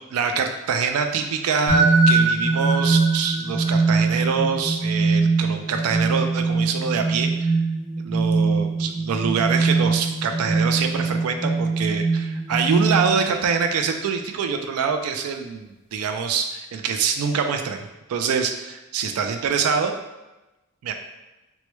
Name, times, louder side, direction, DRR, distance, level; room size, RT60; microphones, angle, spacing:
voice 1, 0.1-7.5 8.0-20.0 20.8-20.9, right 6 dB, 80° right, 5 dB, 0.3 m, -25 dB
sound 1, 1.7-13.4, right 3 dB, 40° left, 1.2 m, -22 dB
4.4 x 2.0 x 3.0 m, 1.0 s
head